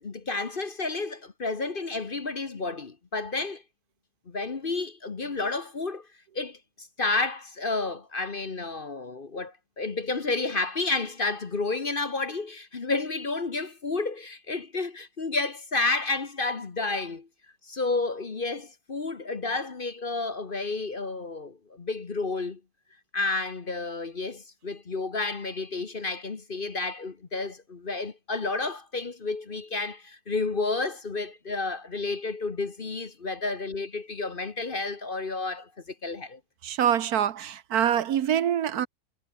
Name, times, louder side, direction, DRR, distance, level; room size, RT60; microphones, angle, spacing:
voice 1, 0.0-3.6 4.3-6.1 6.3-17.3 17.6-22.6 23.1-36.4, left 3 dB, 35° left, 1.3 m, -31 dB
voice 2, 36.6-38.9, right 10 dB, 70° right, 1.4 m, -25 dB
omnidirectional pair, 1.7 m